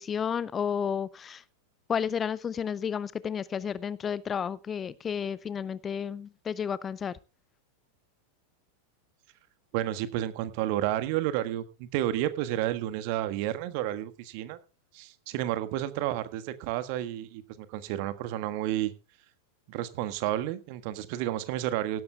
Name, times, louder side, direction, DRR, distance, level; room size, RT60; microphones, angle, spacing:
voice 1, 0.0-1.4 1.9-7.1, left 7 dB, 20° left, 0.5 m, -32 dB
voice 2, 9.7-14.6 14.9-18.9 19.7-22.0, right 13 dB, 45° right, 1.5 m, -31 dB
17.0 x 13.0 x 2.3 m
figure-of-eight pair, 90°, 0 cm